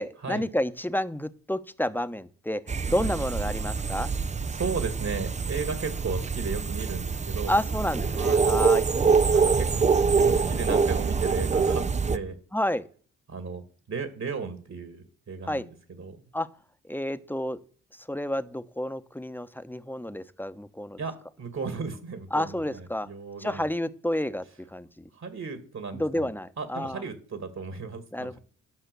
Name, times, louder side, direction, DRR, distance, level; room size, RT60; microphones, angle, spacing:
voice 1, 0.0-4.1 7.5-8.8 12.5-12.8 15.5-15.6 16.3-16.5 16.9-17.6 18.1-21.0 22.3-23.1 23.4-24.4 24.7-25.1 25.9-27.0 28.1-28.4, left 1 dB, 5° left, 11 dB, 1.1 m, -30 dB
sound 1, 2.7-12.2, right 5 dB, 20° right, 0.6 m, -25 dB
voice 2, 4.5-7.6 8.2-8.5 9.3-9.7 10.2-12.4 13.3-13.6 13.9-16.2 21.0-23.7 25.1-26.3 26.6-28.4, right 5 dB, 50° right, 9 dB, 2.3 m, -35 dB
12.0 x 5.7 x 6.9 m, 0.43 s
hypercardioid pair, 45°, 35 cm